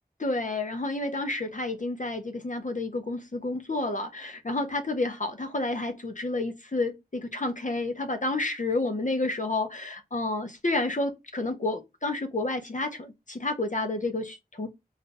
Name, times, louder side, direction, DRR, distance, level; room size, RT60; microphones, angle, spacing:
voice 1, 0.2-14.7, left 2 dB, 50° left, 0.7 m, -30 dB
2.5 x 2.3 x 3.9 m
wide cardioid pair, 50°, 17 cm